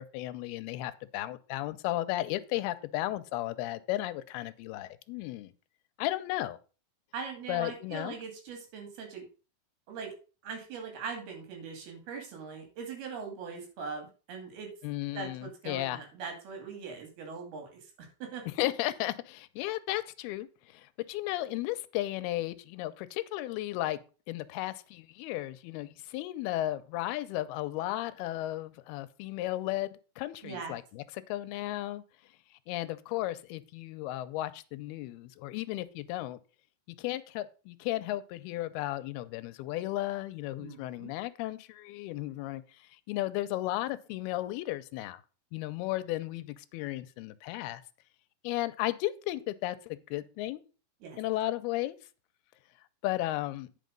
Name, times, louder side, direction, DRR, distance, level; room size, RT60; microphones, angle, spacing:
voice 1, 0.0-5.5 6.0-6.6 7.5-8.2 14.8-16.0 18.6-24.0 24.3-32.0 32.7-36.4 37.0-42.8 43.1-45.2 45.5-47.8 48.4-50.6 51.2-52.0 53.0-53.7, left 16 dB, 85° left, 14 dB, 2.6 m, -34 dB
voice 2, 7.1-9.2 9.9-10.1 10.4-14.7 15.1-18.4 30.4-30.7 40.6-41.1 51.0-51.2, right 5 dB, 80° right, 4 dB, 4.3 m, -41 dB
9.4 x 5.8 x 5.2 m, 0.35 s
omnidirectional pair, 4.4 m